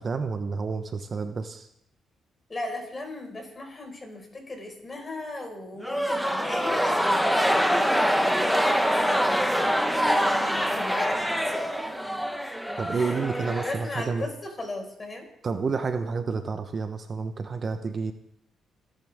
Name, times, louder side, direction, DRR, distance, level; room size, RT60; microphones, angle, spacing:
voice 1, 0.0-1.7 12.8-14.3 15.4-18.1, right 4 dB, 40° right, 7 dB, 1.1 m, -29 dB
voice 2, 2.5-11.6 12.9-15.3, left 2 dB, 30° left, 2 dB, 5.3 m, -37 dB
sound 1, 5.8-14.2, equal, ahead, 1.3 m, -25 dB
28.0 x 10.5 x 3.7 m, 0.75 s
cardioid pair, 90°, 0 cm